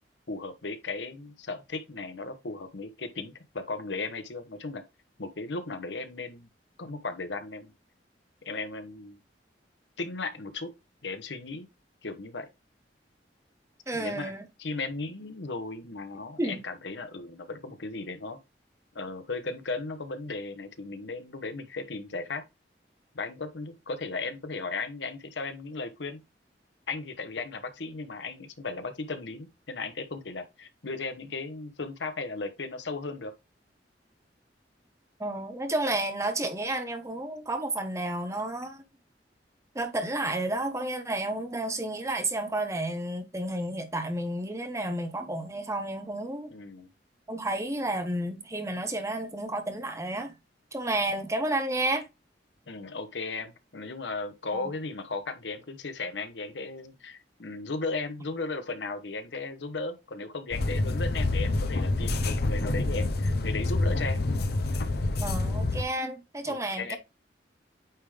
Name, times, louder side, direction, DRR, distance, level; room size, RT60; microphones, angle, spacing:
voice 1, 0.3-4.8 5.2-6.5 6.8-7.7 8.4-9.2 10.0-10.7 11.0-11.7 12.0-12.5 13.9-14.3 14.6-18.4 18.9-22.4 23.1-26.2 26.9-33.3 46.5-46.9 52.7-64.2 66.5-67.0, left 3 dB, 90° left, 1.0 m, -36 dB
voice 2, 13.9-14.5 16.4-16.6 35.2-38.8 39.7-46.5 47.3-50.3 50.7-52.1 54.5-54.7 65.2-67.0, right 1 dB, 15° right, 0.9 m, -31 dB
sound 1, 60.5-65.8, left 2 dB, 60° left, 0.7 m, -27 dB
8.8 x 3.6 x 3.3 m
head